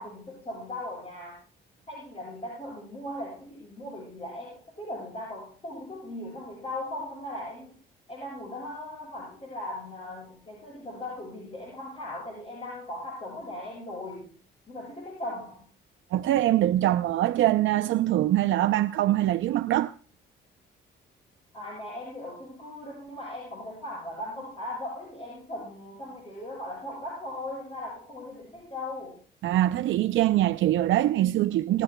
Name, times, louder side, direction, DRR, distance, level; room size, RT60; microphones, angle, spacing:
voice 1, 0.0-1.4 1.9-7.8 8.1-14.2 14.7-15.6 21.5-29.2, left 1 dB, 30° left, 7.5 m, -38 dB
voice 2, 16.1-19.9 29.4-31.8, right 14 dB, 75° right, 0.5 m, -23 dB
28.5 x 12.0 x 2.2 m
cardioid pair, 90°, 20 cm